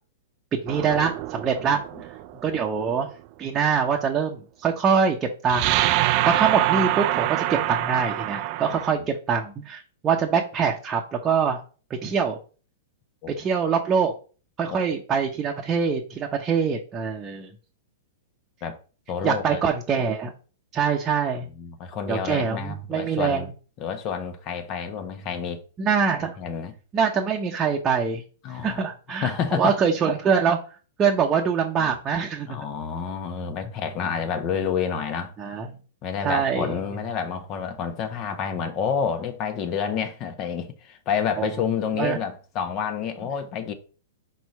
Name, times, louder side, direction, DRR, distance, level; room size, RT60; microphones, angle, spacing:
voice 1, 0.5-1.8 2.4-3.1 3.4-5.8 6.2-11.6 12.0-12.4 13.4-14.1 14.6-17.5 19.2-20.3 20.7-21.5 22.1-23.5 25.8-26.4 26.9-28.2 28.6-30.6 31.0-32.6 35.4-35.8 36.2-36.7 41.4-41.5 42.0-42.2, right 6 dB, 25° right, 0.9 m, -24 dB
sound 1, 0.7-2.6 5.5-8.9, right 15 dB, 45° right, 0.4 m, -25 dB
voice 2, 8.7-9.1 13.2-13.3 14.7-14.8 18.6-18.8 19.1-19.6 21.4-23.5 23.8-25.6 26.4-26.7 28.4-28.8 29.1-29.7 31.8-31.9 32.5-35.3 36.0-43.7, left 7 dB, 35° left, 1.2 m, -29 dB
4.5 x 4.2 x 5.4 m
hypercardioid pair, 110°, 0 cm